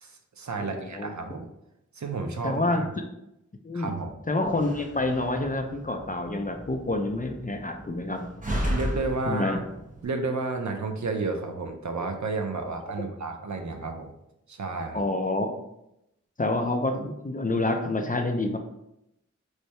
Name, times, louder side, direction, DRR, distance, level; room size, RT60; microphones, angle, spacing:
voice 1, 0.0-1.5 1.9-2.9 3.7-4.1 8.6-9.6 10.0-14.1 14.5-15.0, right 3 dB, 70° right, 5 dB, 0.5 m, -31 dB
voice 2, 0.6-1.1 2.4-2.8 3.6-4.0 4.3-8.2 9.3-9.6 14.9-15.6 16.4-18.6, left 2 dB, 30° left, 4 dB, 0.4 m, -28 dB
Slam, 4.4-10.1, equal, 25° right, 0.7 m, -35 dB
3.2 x 2.7 x 3.1 m, 0.84 s
wide cardioid pair, 45°, 30 cm